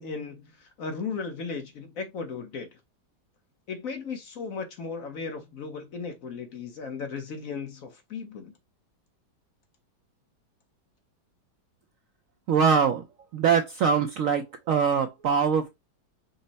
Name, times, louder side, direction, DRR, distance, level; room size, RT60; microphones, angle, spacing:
voice 1, 0.0-2.7 3.7-8.5, left 5 dB, 60° left, 1.1 m, -36 dB
voice 2, 12.5-13.0 13.3-15.7, right 6 dB, 70° right, 0.8 m, -23 dB
5.4 x 2.0 x 3.9 m
omnidirectional pair, 1.9 m